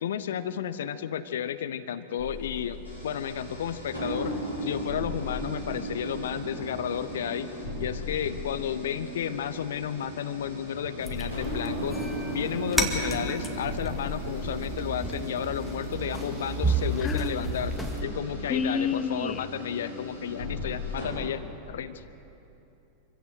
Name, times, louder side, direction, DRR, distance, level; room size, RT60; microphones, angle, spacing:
voice 1, 0.0-7.5 7.8-12.0 12.3-22.0, left 9 dB, 60° left, 13 dB, 0.7 m, -32 dB
sound 1, 2.2-21.1, equal, 80° left, 6.5 m, -36 dB
sound 2, 11.0-18.0, right 1 dB, 5° left, 2.1 m, -32 dB
voice 2, 17.0-17.6 18.0-18.2 18.5-19.5, left 6 dB, 20° left, 12 dB, 0.8 m, -30 dB
25.0 x 16.0 x 8.1 m, 3.0 s
figure-of-eight pair, 90°, 0 cm